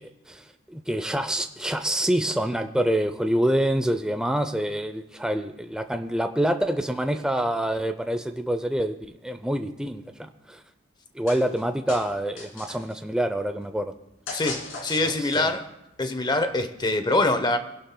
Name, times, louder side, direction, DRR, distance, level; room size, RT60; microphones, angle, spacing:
voice 1, 0.0-9.0 9.2-10.6 11.1-13.9 15.2-15.5, right 1 dB, 5° right, 8 dB, 0.5 m, -26 dB
sound 1, 11.3-11.6 11.9-12.9 14.3-15.7, left 3 dB, 70° left, 2.6 m, -37 dB
voice 2, 14.3-15.7 16.0-17.6, left 2 dB, 20° left, 9 dB, 0.8 m, -24 dB
28.0 x 11.5 x 2.2 m, 0.95 s
head